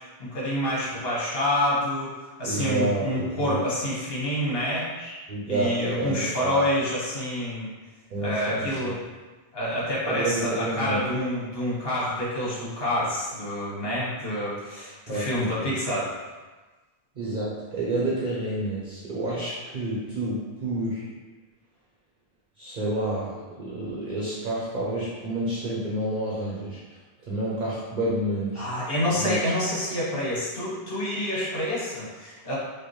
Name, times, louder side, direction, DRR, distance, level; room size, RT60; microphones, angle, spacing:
voice 1, 0.2-4.9 5.5-7.7 8.2-9.0 9.5-16.1 28.6-32.6, left 1 dB, 65° left, -7 dB, 1.4 m, -27 dB
voice 2, 2.4-3.6 5.0-6.6 8.1-8.9 10.1-11.0 15.1-15.7 17.2-21.0 22.6-27.0 27.3-28.6 29.2-29.4, right 1 dB, 50° right, -6 dB, 0.8 m, -29 dB
5.0 x 2.2 x 3.1 m, 1.3 s
omnidirectional pair, 1.1 m